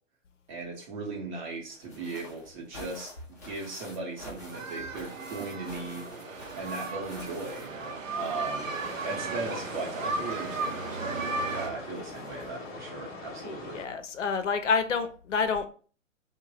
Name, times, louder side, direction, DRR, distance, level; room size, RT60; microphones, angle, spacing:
voice 1, 0.5-6.1 6.5-8.7 9.0-13.8, right 3 dB, 35° right, 1.0 m, -38 dB
sound 1, 1.7-8.5 8.7-12.7 13.8-13.9 14.2-14.3, left 1 dB, 15° left, 0.3 m, -49 dB
sound 2, 4.4-11.7, right 3 dB, 75° right, 0.7 m, -35 dB
sound 3, 8.6-13.8, left 2 dB, 40° left, 0.9 m, -42 dB
voice 2, 13.4-15.7, left 5 dB, 65° left, 0.6 m, -28 dB
2.6 x 2.2 x 3.1 m
figure-of-eight pair, 120°, 39 cm